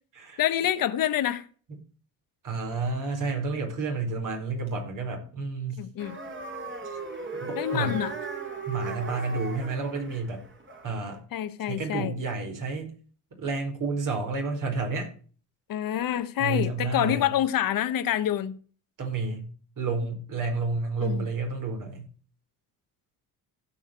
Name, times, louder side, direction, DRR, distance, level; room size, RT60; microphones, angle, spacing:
voice 1, 0.4-1.4 5.8-6.2 7.6-8.1 11.3-12.1 15.7-18.6 21.0-21.3, left 11 dB, 60° left, 1.1 m, -27 dB
voice 2, 2.4-5.8 6.8-7.0 7.4-8.0 8.7-10.4 10.8-11.2 11.7-12.9 13.4-15.1 16.4-17.3 19.0-19.5 19.8-22.1, right 3 dB, 55° right, 4.8 m, -30 dB
sound 1, 6.0-11.2, right 3 dB, 30° right, 3.2 m, -37 dB
16.0 x 5.7 x 4.6 m
cardioid pair, 95°, 38 cm